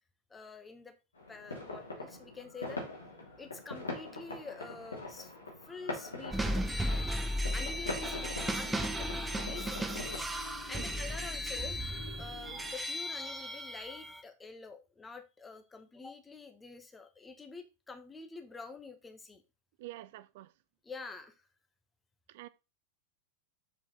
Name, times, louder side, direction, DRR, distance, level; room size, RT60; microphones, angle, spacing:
voice 1, 0.3-0.9 1.3-2.8 3.4-5.3 5.6-6.4 7.5-10.2 10.5-11.8 12.2-19.4 20.8-21.4, left 4 dB, 15° left, 1.3 m, -47 dB
sound 1, 1.2-10.2, left 2 dB, 75° left, 3.1 m, -43 dB
sound 2, 6.3-14.2, equal, 10° right, 0.9 m, -35 dB
sound 3, 7.5-12.7, left 5 dB, 55° left, 2.3 m, -51 dB
voice 2, 19.8-20.5 22.3-22.5, right 16 dB, 50° right, 0.6 m, -47 dB
7.2 x 5.9 x 4.0 m
figure-of-eight pair, 90°, 0 cm